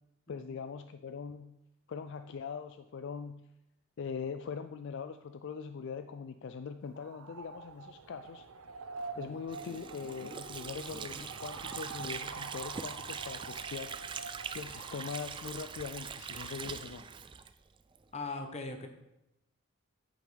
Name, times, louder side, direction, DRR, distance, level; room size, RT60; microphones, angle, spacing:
voice 1, 0.3-1.6 1.9-3.5 4.0-8.5 9.2-14.0 14.5-17.0, left 6 dB, 55° left, 9 dB, 0.3 m, -42 dB
sound 1, 6.9-16.6, right 4 dB, 85° right, 0.7 m, -47 dB
Water / Sink (filling or washing), 9.5-18.0, right 6 dB, 20° right, 0.3 m, -42 dB
voice 2, 18.1-18.9, left 3 dB, 30° left, 5 dB, 0.9 m, -40 dB
10.0 x 8.3 x 3.3 m, 0.88 s
head